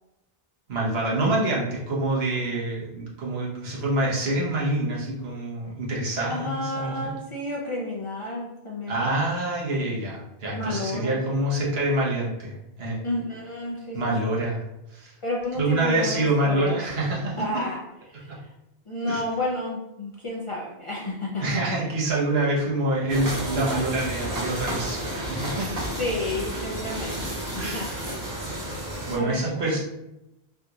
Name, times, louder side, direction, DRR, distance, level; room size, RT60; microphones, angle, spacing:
voice 1, 0.7-7.1 8.9-13.0 13.9-14.6 14.9-15.1 15.6-17.6 18.3-18.4 19.1-19.2 21.4-25.8 27.6-28.0 29.1-29.8, right 1 dB, 75° right, -4 dB, 1.2 m, -26 dB
voice 2, 6.3-9.0 10.5-11.1 13.0-14.3 15.2-16.8 17.4-17.8 18.2-18.3 18.9-21.8 23.0-23.1 26.0-27.9 29.2-29.8, left 1 dB, 40° left, -4 dB, 0.5 m, -31 dB
sound 1, 23.1-29.2, right 1 dB, 40° right, 1.2 m, -31 dB
3.5 x 2.8 x 2.4 m, 0.90 s
omnidirectional pair, 1.0 m